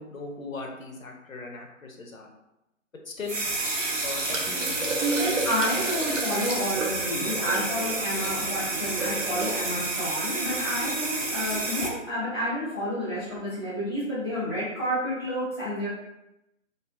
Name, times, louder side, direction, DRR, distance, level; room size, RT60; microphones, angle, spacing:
voice 1, 0.0-2.3 3.0-3.4 4.0-5.4 7.2-7.3, left 3 dB, 85° left, 2 dB, 0.7 m, -39 dB
sound 1, 3.2-11.9, right 2 dB, 70° right, 0.7 m, -29 dB
voice 2, 5.0-15.9, equal, 20° left, -11 dB, 0.7 m, -30 dB
2.5 x 2.3 x 2.3 m, 0.90 s
figure-of-eight pair, 150°, 39 cm